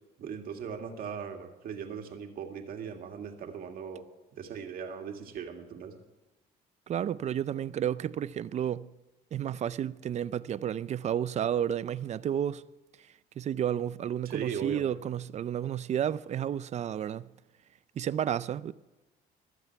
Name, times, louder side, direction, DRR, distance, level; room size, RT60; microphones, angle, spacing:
voice 1, 0.2-4.0 4.3-5.9 14.3-14.8, right 7 dB, 60° right, 2.0 m, -38 dB
voice 2, 6.9-8.9 9.3-12.6 13.4-17.3 18.0-18.7, right 10 dB, 40° right, 0.5 m, -31 dB
23.5 x 7.9 x 4.6 m
cardioid pair, 110°, 17 cm